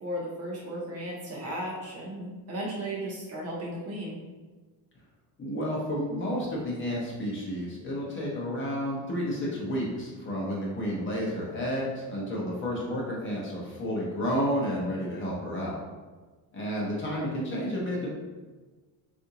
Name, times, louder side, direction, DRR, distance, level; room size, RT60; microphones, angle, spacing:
voice 1, 0.0-4.2, right 1 dB, 35° right, -3 dB, 0.6 m, -35 dB
voice 2, 5.4-15.8 16.5-18.1, equal, 30° left, -4 dB, 0.7 m, -31 dB
3.7 x 2.5 x 2.8 m, 1.3 s
cardioid pair, 170°, 43 cm